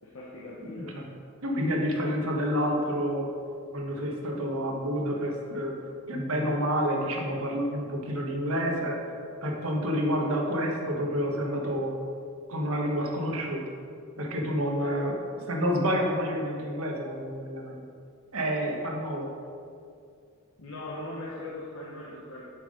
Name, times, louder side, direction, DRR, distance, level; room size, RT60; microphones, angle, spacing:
voice 1, 0.0-1.0 14.8-15.0 20.6-22.4, left 2 dB, 75° left, -5 dB, 1.1 m, -40 dB
voice 2, 1.4-3.3 3.7-5.7 6.1-9.0 9.4-11.9 12.5-13.6 14.2-15.1 15.5-17.8 18.3-19.3, equal, 70° right, 0 dB, 1.3 m, -29 dB
7.4 x 6.0 x 5.1 m, 2.4 s
head